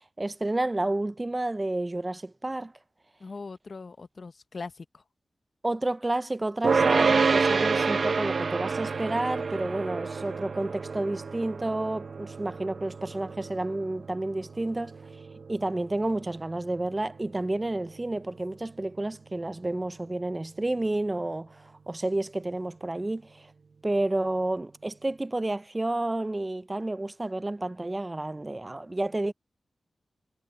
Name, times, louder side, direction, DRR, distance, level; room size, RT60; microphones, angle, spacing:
voice 1, 0.2-2.7 5.6-15.0 15.5-23.5 23.8-29.3, right 2 dB, 25° right, 0.5 m, -30 dB
voice 2, 3.2-5.0, left 4 dB, 60° left, 0.9 m, -41 dB
sound 1, 6.6-18.0, right 4 dB, 65° right, 0.7 m, -29 dB
cardioid pair, 65°, 0 cm